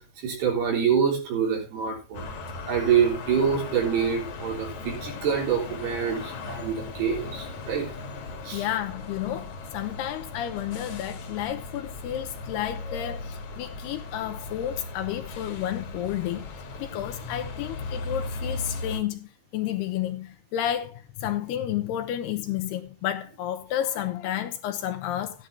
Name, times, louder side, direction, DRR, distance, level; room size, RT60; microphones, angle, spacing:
voice 1, 0.2-2.3 2.7-7.9 8.4-8.6, right 7 dB, 65° right, 5.5 m, -26 dB
sound 1, 2.1-19.0, left 3 dB, 50° left, 2.6 m, -37 dB
voice 2, 8.5-16.5 16.8-25.5, left 11 dB, 75° left, 2.7 m, -31 dB
14.5 x 10.5 x 2.9 m
omnidirectional pair, 5.1 m